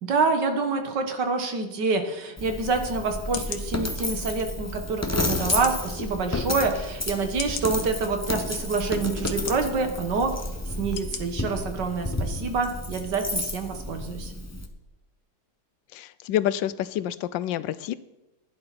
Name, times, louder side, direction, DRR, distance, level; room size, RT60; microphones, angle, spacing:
voice 1, 0.0-10.3 10.8-14.3, right 4 dB, 65° right, 6 dB, 2.0 m, -27 dB
Coin (dropping), 2.4-14.7, left 1 dB, 20° left, 0.5 m, -31 dB
sound 1, 2.6-2.8 3.3-3.6 4.4-4.5 5.5-5.8 6.5-6.6 7.4-7.7 8.5-8.6 9.3-9.6 10.3-10.4 11.0-11.2 11.6-11.7, left 8 dB, 60° left, 1.2 m, -35 dB
voice 2, 15.9-17.9, left 11 dB, 80° left, 16 dB, 1.2 m, -28 dB
15.5 x 10.5 x 4.1 m, 1.0 s
omnidirectional pair, 2.0 m